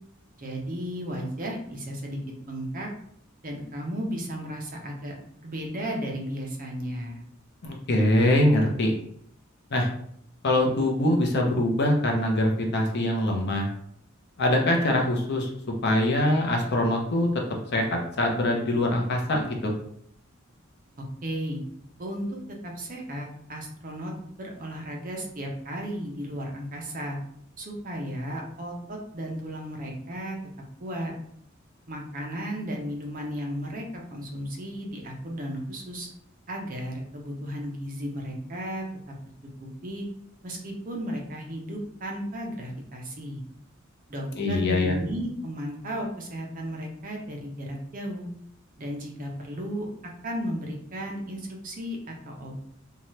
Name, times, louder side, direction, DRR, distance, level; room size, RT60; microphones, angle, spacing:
voice 1, 0.4-2.2 2.5-2.9 3.4-5.1 5.4-7.2 21.0-21.6 22.0-22.3 22.6-24.1 24.4-27.2 27.6-30.4 30.8-31.1 31.9-36.1 36.5-38.8 39.6-40.1 40.4-43.4 44.1-48.3 48.8-49.9 50.2-52.6, equal, 40° right, 0 dB, 0.6 m, -34 dB
voice 2, 7.6-8.9 9.7-9.9 10.4-13.7 14.4-15.5 15.8-17.3 17.7-19.7 44.3-45.0, left 1 dB, 55° left, 1 dB, 0.6 m, -23 dB
2.7 x 2.3 x 3.1 m, 0.68 s
head